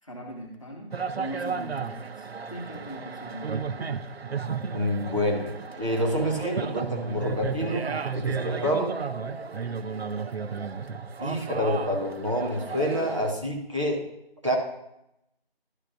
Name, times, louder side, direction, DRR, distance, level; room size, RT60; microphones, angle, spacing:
voice 1, 0.0-4.0, right 1 dB, 35° left, 0 dB, 1.3 m, -40 dB
sound 1, 0.9-13.3, right 5 dB, 85° right, 0.6 m, -33 dB
voice 2, 4.7-9.0 11.2-14.0 14.4-14.6, equal, 30° right, -2 dB, 1.3 m, -28 dB
12.0 x 5.8 x 2.5 m, 0.82 s
figure-of-eight pair, 175°, 30 cm